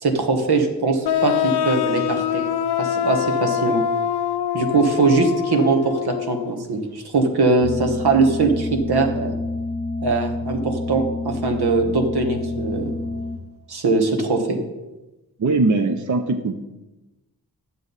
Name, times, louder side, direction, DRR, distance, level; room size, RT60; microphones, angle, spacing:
voice 1, 0.0-2.4 2.8-3.8 4.5-9.3 10.0-12.9 13.7-14.6, right 3 dB, 85° right, 4 dB, 1.4 m, -21 dB
sound 1, 1.0-6.6, left 9 dB, 85° left, 0.6 m, -24 dB
sound 2, 7.6-13.4, left 2 dB, 30° left, 0.7 m, -28 dB
voice 2, 15.4-16.6, right 3 dB, 50° right, 7 dB, 0.6 m, -20 dB
11.5 x 7.5 x 4.0 m, 1.0 s
wide cardioid pair, 135°, 38 cm